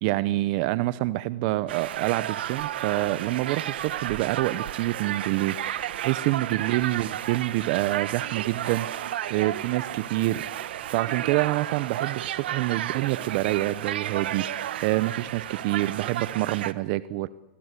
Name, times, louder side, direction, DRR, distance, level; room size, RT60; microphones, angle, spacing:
voice 1, 0.0-5.6 6.0-10.5 10.9-17.3, right 17 dB, 55° right, 16 dB, 0.8 m, -27 dB
sound 1, 1.7-16.7, right 12 dB, 80° right, 1.4 m, -32 dB
25.0 x 22.0 x 8.3 m, 1.0 s
supercardioid pair, 135°, 6 cm